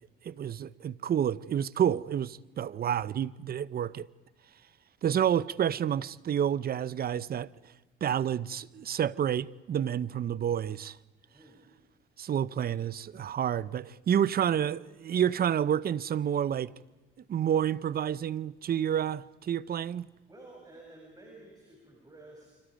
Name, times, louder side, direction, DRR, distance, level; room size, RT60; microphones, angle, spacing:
voice 1, 0.2-4.1 5.0-7.5 8.0-11.0 12.2-16.7 17.3-20.1, right 9 dB, 50° right, 0.7 m, -29 dB
voice 2, 20.3-22.6, right 2 dB, 20° right, 7.3 m, -52 dB
29.5 x 25.0 x 5.1 m
cardioid pair, 90°, 20 cm